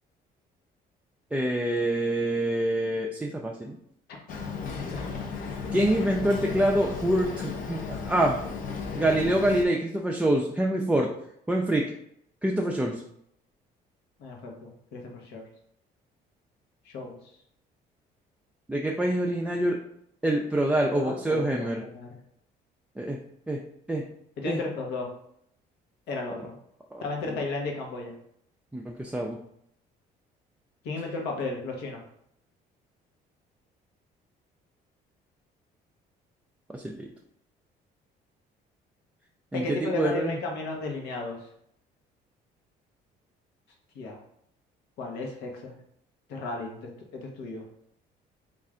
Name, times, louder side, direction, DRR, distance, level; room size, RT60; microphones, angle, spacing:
voice 1, 1.3-3.8 5.7-8.4 9.0-11.1 11.5-11.9 12.4-13.0 18.7-19.8 20.2-21.8 23.0-23.2 23.5-23.6 23.9-24.0 24.4-24.6 26.9-27.0 28.7-29.4 36.7-37.1 39.5-40.4, right 1 dB, 5° right, -1 dB, 0.4 m, -26 dB
Boat Water vehicle, 4.3-9.7, left 5 dB, 55° left, 0.6 m, -34 dB
voice 2, 14.2-15.4 16.8-17.2 20.9-22.2 24.4-25.1 26.1-26.5 27.0-28.1 30.8-32.0 39.5-41.4 43.9-44.2 45.0-45.7 46.3-47.6, left 3 dB, 85° left, 1 dB, 1.0 m, -34 dB
3.3 x 2.5 x 3.7 m, 0.72 s
cardioid pair, 110°, 17 cm